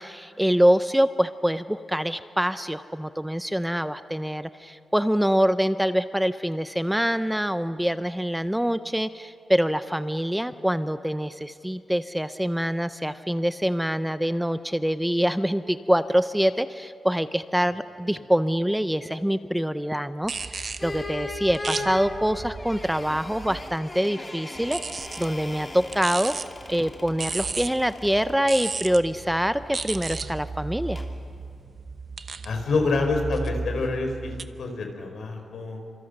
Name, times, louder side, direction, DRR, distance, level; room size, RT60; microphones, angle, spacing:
voice 1, 0.0-24.8 25.2-26.3 26.7-31.0, equal, 5° right, 12 dB, 0.5 m, -25 dB
sound 1, 20.2-23.7 24.5-34.4, right 4 dB, 40° right, 0.9 m, -35 dB
sound 2, 20.8-28.4 31.0-31.2, left 2 dB, 20° left, 2.7 m, -38 dB
voice 2, 32.4-34.3 34.6-35.8, left 3 dB, 70° left, 4 dB, 4.3 m, -27 dB
29.0 x 26.0 x 6.6 m, 2.5 s
wide cardioid pair, 160°, 0 cm